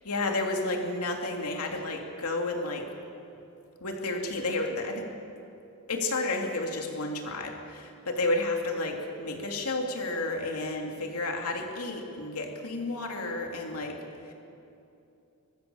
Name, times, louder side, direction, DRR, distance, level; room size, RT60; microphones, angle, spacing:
voice 1, 0.0-2.9 3.8-5.1 5.9-14.0 14.2-14.3, left 2 dB, 90° left, 2 dB, 2.7 m, -31 dB
24.0 x 22.0 x 7.1 m, 2.7 s
head